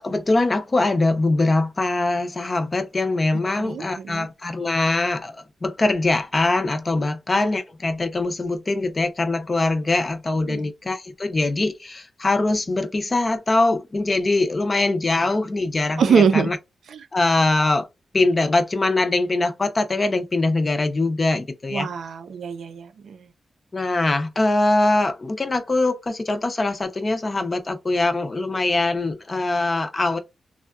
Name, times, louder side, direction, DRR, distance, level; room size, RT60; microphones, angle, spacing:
voice 1, 0.0-16.6 17.1-17.9 18.1-21.9 23.7-30.2, left 2 dB, 25° left, 0.5 m, -22 dB
voice 2, 3.6-4.3 10.5-10.6 16.0-16.5 21.7-23.3, right 6 dB, 65° right, 0.5 m, -23 dB
3.5 x 2.2 x 2.3 m
wide cardioid pair, 175°, 0 cm